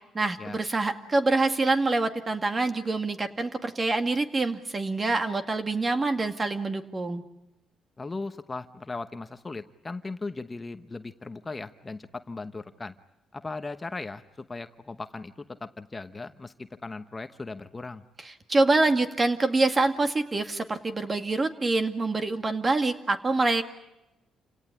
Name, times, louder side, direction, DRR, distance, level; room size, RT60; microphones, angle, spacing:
voice 1, 0.1-7.2 18.5-23.6, right 3 dB, 30° right, 7 dB, 2.2 m, -25 dB
voice 2, 8.0-12.9 13.3-18.0, left 3 dB, 25° left, 9 dB, 1.0 m, -38 dB
29.0 x 18.0 x 9.9 m, 0.96 s
cardioid pair, 90°, 0 cm